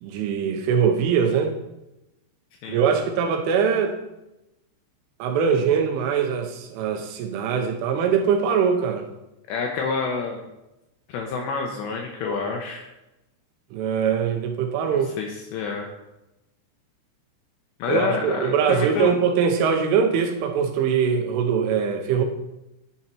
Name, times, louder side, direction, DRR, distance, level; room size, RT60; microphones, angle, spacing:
voice 1, 0.0-1.5 2.7-4.0 5.2-9.1 13.7-15.1 17.9-22.2, right 7 dB, 80° right, 4 dB, 3.2 m, -22 dB
voice 2, 9.5-10.5 11.1-12.9 14.9-15.9 17.8-19.1, left 4 dB, 80° left, 1 dB, 2.6 m, -28 dB
10.5 x 5.8 x 4.4 m, 0.96 s
omnidirectional pair, 5.9 m